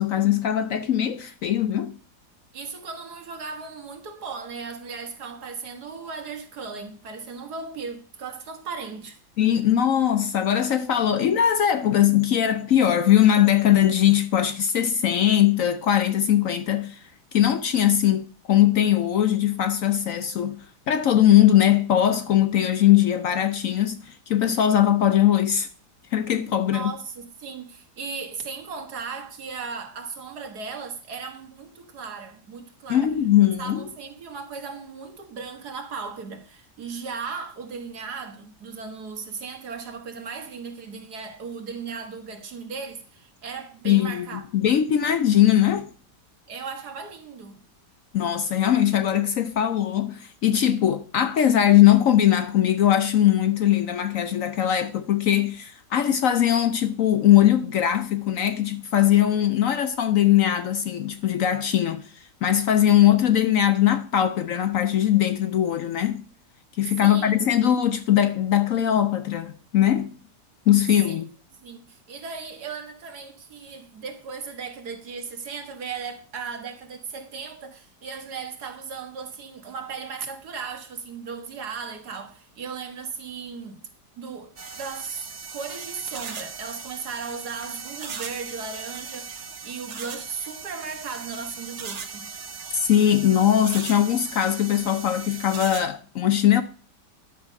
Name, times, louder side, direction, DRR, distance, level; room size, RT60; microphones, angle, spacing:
voice 1, 0.0-2.0 9.4-25.7 26.1-26.9 32.9-33.8 43.8-45.9 48.1-66.2 66.8-70.1 70.7-71.3 92.7-96.6, left 11 dB, 65° left, 0.9 m, -20 dB
voice 2, 2.5-9.2 26.7-33.1 33.6-44.4 46.5-47.6 67.0-67.5 71.1-71.2 71.6-83.8 84.1-92.3, right 5 dB, 70° right, 2.1 m, -36 dB
sound 1, 84.6-95.8, right 5 dB, 45° right, 1.3 m, -38 dB
10.5 x 7.2 x 5.2 m
omnidirectional pair, 1.8 m